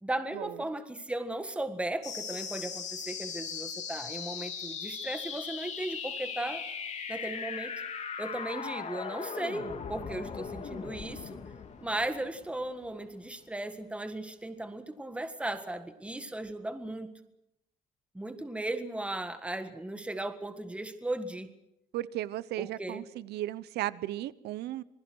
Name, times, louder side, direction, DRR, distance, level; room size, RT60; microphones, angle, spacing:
voice 1, 0.0-6.6 7.1-7.7 8.2-11.4 11.8-17.1 18.1-21.5 22.6-23.0, right 1 dB, 5° right, 8 dB, 1.7 m, -36 dB
sound 1, 2.0-13.0, left 6 dB, 45° left, 2.9 m, -39 dB
voice 2, 21.9-24.8, right 14 dB, 75° right, 18 dB, 0.9 m, -35 dB
27.0 x 20.5 x 6.3 m, 0.83 s
cardioid pair, 110°, 17 cm